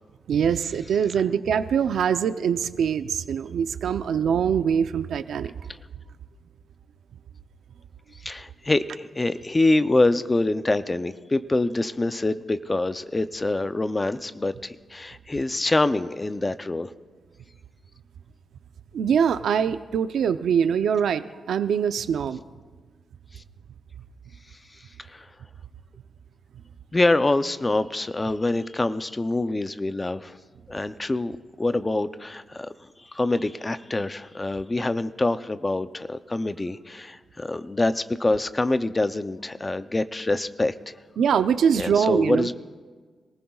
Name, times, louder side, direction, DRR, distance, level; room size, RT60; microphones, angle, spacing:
voice 1, 0.3-5.5 18.9-22.4 41.2-42.5, right 7 dB, 80° right, 11 dB, 0.5 m, -23 dB
voice 2, 8.2-16.9 23.3-23.4 25.1-25.3 26.9-30.3 30.7-32.7 33.1-41.0 41.7-42.5, left 2 dB, 20° left, 12 dB, 0.5 m, -25 dB
26.0 x 19.0 x 2.4 m, 1.5 s
wide cardioid pair, 135°, 0 cm